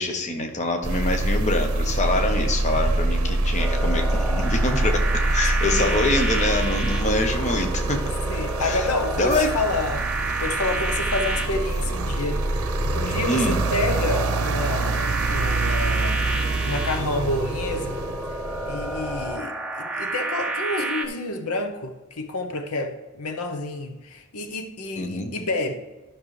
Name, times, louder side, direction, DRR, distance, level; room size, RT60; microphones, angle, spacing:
voice 1, 0.0-8.0 8.6-8.9 9.2-9.5 13.3-13.6 25.0-25.3, left 2 dB, 30° left, 5 dB, 0.9 m, -25 dB
sound 1, 0.8-19.4, right 2 dB, 70° right, 0.7 m, -25 dB
sound 2, 3.6-21.1, right 2 dB, 5° right, 0.6 m, -30 dB
voice 2, 5.6-6.0 8.3-10.0 10.4-12.4 12.9-16.4 16.6-18.0 18.7-25.7, left 2 dB, 80° left, 6 dB, 0.8 m, -29 dB
12.0 x 6.1 x 3.2 m, 1.2 s
head